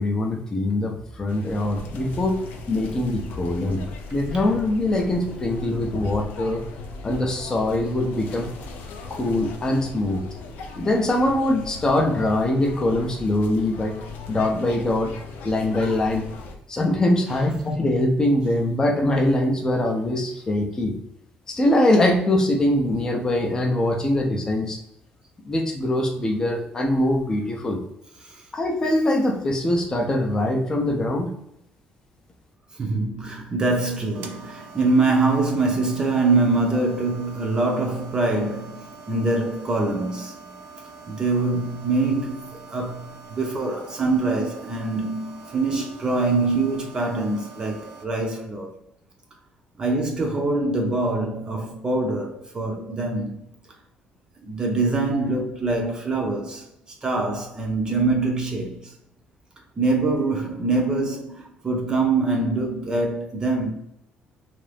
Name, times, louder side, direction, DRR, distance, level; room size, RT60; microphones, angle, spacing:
voice 1, 0.0-2.4 2.7-3.8 4.1-6.6 7.0-8.5 9.1-10.2 10.8-13.9 14.3-15.1 15.4-16.2 16.7-20.9 21.6-24.8 25.4-27.8 28.5-31.3, left 1 dB, 20° left, 0.5 m, -22 dB
sound 1, 1.3-16.6, left 3 dB, 75° left, 0.5 m, -38 dB
voice 2, 32.7-40.4 41.1-48.7 49.8-53.4 54.4-56.7 57.0-58.9 59.8-63.7, right 3 dB, 25° right, 0.5 m, -24 dB
sound 2, 34.1-48.0, right 4 dB, 75° right, 0.5 m, -44 dB
2.7 x 2.5 x 3.3 m
cardioid pair, 135°, 3 cm